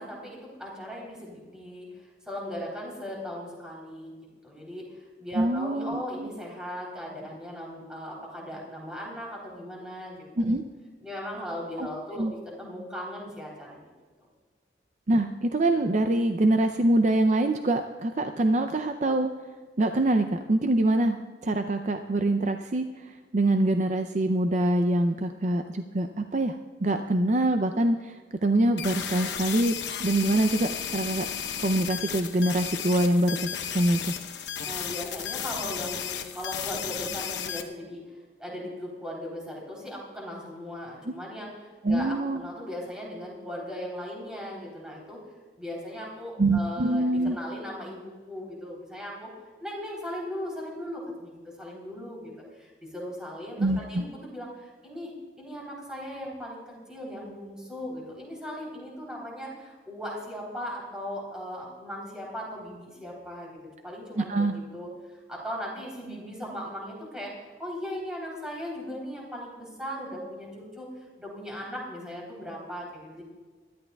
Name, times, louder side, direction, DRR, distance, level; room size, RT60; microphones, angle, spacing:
voice 1, 0.0-4.1 4.4-10.5 11.0-13.9 34.6-38.1 38.4-45.2 45.6-49.3 49.6-55.1 55.4-63.6 63.8-64.9 65.3-73.2, equal, 5° right, -4 dB, 3.5 m, -38 dB
voice 2, 5.3-6.3 10.4-10.6 11.8-11.9 12.1-12.3 15.1-19.3 19.8-26.6 26.8-28.2 28.4-31.3 31.6-33.4 33.7-34.1 41.8-42.4 46.4-47.4 53.6-54.0 64.2-64.5, right 1 dB, 40° right, 7 dB, 0.5 m, -24 dB
sound 1, 28.8-37.6, left 8 dB, 80° left, 0.8 m, -34 dB
22.5 x 13.0 x 2.3 m, 1.4 s
head